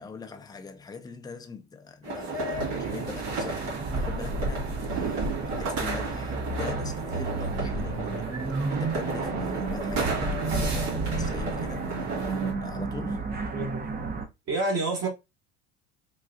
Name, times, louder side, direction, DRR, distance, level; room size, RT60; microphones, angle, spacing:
voice 1, 0.0-5.3 5.5-8.4 8.7-13.3, left 4 dB, 10° left, 0.5 m, -42 dB
sound 1, 2.0-12.5, right 3 dB, 85° right, 2.1 m, -33 dB
sound 2, 2.5-14.2, right 3 dB, 25° right, 0.7 m, -32 dB
voice 2, 14.5-15.1, right 2 dB, 40° right, 1.3 m, -28 dB
3.8 x 2.3 x 2.5 m
supercardioid pair, 90°, 36 cm